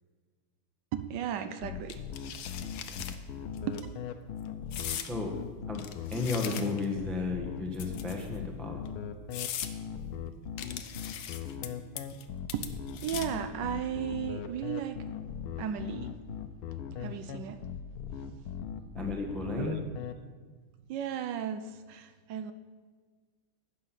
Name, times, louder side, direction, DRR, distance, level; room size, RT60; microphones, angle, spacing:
voice 1, 0.9-2.0 2.6-2.7 3.0-3.1 3.6-3.8 12.5-12.7 13.0-15.0 15.6-16.1 17.0-17.6 19.5-19.8 20.9-22.5, right 9 dB, 70° right, 10 dB, 1.1 m, -35 dB
sound 1, 1.6-20.1, left 8 dB, 85° left, 1.5 m, -39 dB
Plastic Blinds, 1.9-3.2 3.6-3.8 4.7-5.1 5.7-6.9 7.7-8.4 8.9-9.0 9.3-9.7 10.6-11.7 12.0-12.2 12.5-13.4, left 9 dB, 70° left, 0.9 m, -39 dB
voice 2, 6.1-8.8 18.9-19.8, left 3 dB, ahead, 2 dB, 0.7 m, -33 dB
10.5 x 8.8 x 5.9 m, 1.5 s
omnidirectional pair, 2.4 m